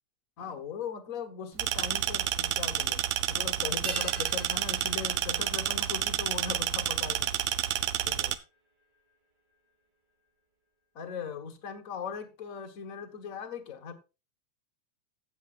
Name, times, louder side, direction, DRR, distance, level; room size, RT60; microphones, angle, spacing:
voice 1, 0.4-7.4 8.0-8.4 10.9-13.9, left 6 dB, 50° left, 1.0 m, -39 dB
sound 1, 1.6-8.3, right 12 dB, 70° right, 1.8 m, -30 dB
sound 2, 3.8-8.6 8.8-8.9, right 1 dB, 35° right, 4.6 m, -47 dB
15.5 x 8.7 x 2.4 m
omnidirectional pair, 3.5 m